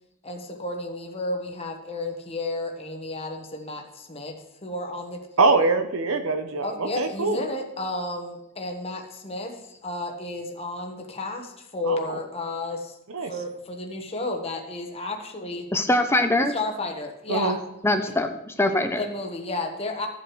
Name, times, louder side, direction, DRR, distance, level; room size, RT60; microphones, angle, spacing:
voice 1, 0.2-4.4 4.6-5.2 6.6-13.0 13.3-15.7 16.5-17.5 19.0-20.1, left 2 dB, 30° left, 3 dB, 1.1 m, -32 dB
voice 2, 5.4-7.4 11.9-12.2 13.1-13.3 17.3-17.6, right 3 dB, 80° right, 7 dB, 0.8 m, -23 dB
voice 3, 15.7-16.5 17.8-19.0, left 1 dB, 10° left, 7 dB, 0.5 m, -22 dB
13.0 x 7.9 x 3.1 m, 0.90 s
head